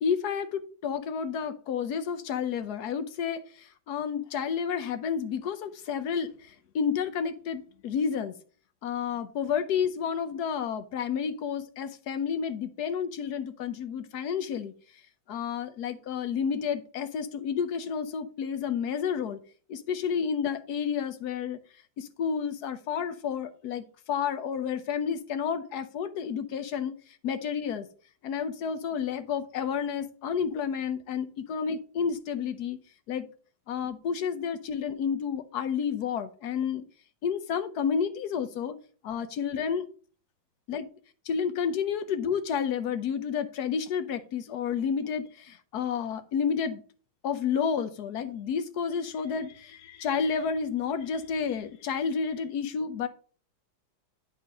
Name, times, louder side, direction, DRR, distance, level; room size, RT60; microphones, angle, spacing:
voice 1, 0.0-8.3 8.8-14.7 15.3-19.4 19.7-21.6 22.0-26.9 27.2-27.9 28.2-32.8 33.1-33.2 33.7-36.8 37.2-38.8 39.0-39.8 40.7-40.9 41.3-46.8 47.2-53.1, left 7 dB, 65° left, 11 dB, 1.0 m, -30 dB
11.0 x 4.0 x 5.3 m, 0.42 s
omnidirectional pair, 2.2 m